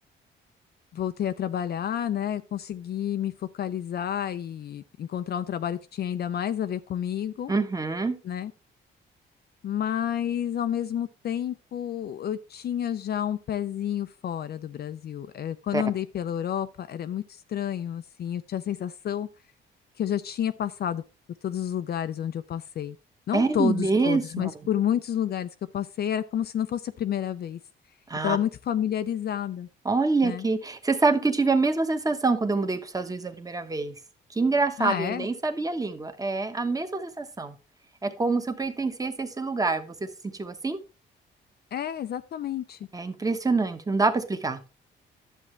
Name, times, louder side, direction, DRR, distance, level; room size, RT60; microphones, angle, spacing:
voice 1, 0.9-7.5 8.2-8.5 9.6-19.3 20.0-21.0 21.4-23.0 23.3-27.6 28.2-29.7 30.2-30.4 34.8-35.3 41.7-42.9, left 10 dB, 55° left, 0.5 m, -30 dB
voice 2, 7.5-8.2 15.7-15.8 23.3-24.5 28.1-28.4 29.8-34.0 34.3-37.6 38.0-40.8 42.9-44.6, right 3 dB, 15° right, 1.2 m, -26 dB
11.0 x 7.1 x 3.2 m
cardioid pair, 90°, 20 cm